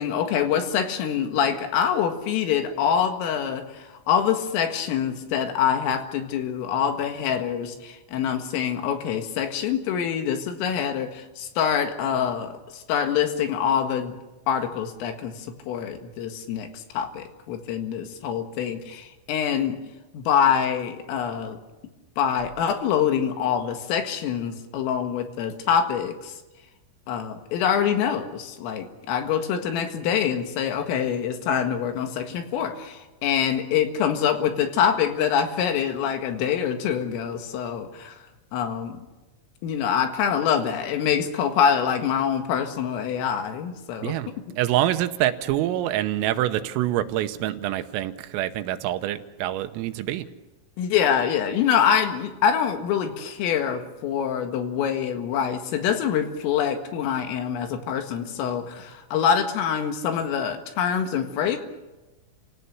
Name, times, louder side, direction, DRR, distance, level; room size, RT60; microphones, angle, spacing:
voice 1, 0.0-14.1 14.5-19.8 20.1-21.6 22.2-26.4 27.1-38.2 38.5-39.0 39.6-44.2 50.8-61.6, left 8 dB, 80° left, 6 dB, 4.4 m, -25 dB
voice 2, 44.6-50.3, right 13 dB, 85° right, 10 dB, 3.6 m, -26 dB
29.0 x 17.5 x 7.0 m, 1.1 s
omnidirectional pair, 5.9 m